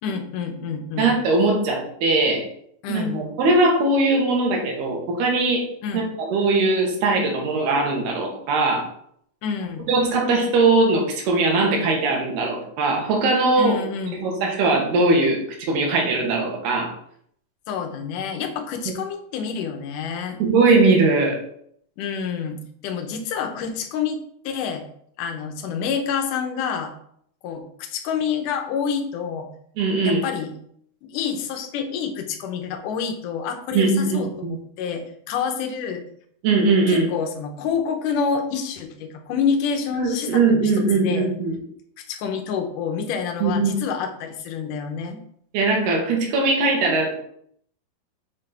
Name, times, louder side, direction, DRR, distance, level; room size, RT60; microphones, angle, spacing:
voice 1, 0.0-1.1 2.8-3.3 5.8-6.1 9.4-9.9 13.6-14.2 17.7-20.4 22.0-24.8 25.2-26.9 27.4-29.5 30.0-30.5 31.0-36.0 36.9-41.3 42.0-45.2, left 6 dB, 70° left, 5 dB, 2.1 m, -28 dB
voice 2, 1.0-2.5 2.9-5.7 5.9-8.9 9.9-13.8 14.2-16.9 20.4-21.4 29.8-30.2 33.7-34.6 36.4-37.1 39.9-41.5 43.4-43.7 45.5-47.1, right 3 dB, 70° right, 0 dB, 3.7 m, -20 dB
7.5 x 6.7 x 4.3 m, 0.67 s
omnidirectional pair, 4.8 m